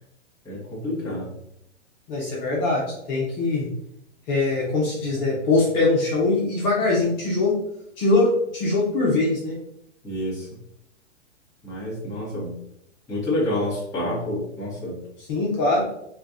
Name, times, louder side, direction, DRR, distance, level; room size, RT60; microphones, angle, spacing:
voice 1, 0.4-1.4 10.0-10.5 11.6-12.6 13.1-15.0, left 1 dB, 10° left, -9 dB, 1.3 m, -28 dB
voice 2, 2.1-2.8 3.1-3.7 4.3-7.6 8.0-9.5 15.3-15.8, left 3 dB, 40° left, -5 dB, 1.2 m, -22 dB
4.4 x 2.6 x 2.6 m, 0.77 s
hypercardioid pair, 140°, 36 cm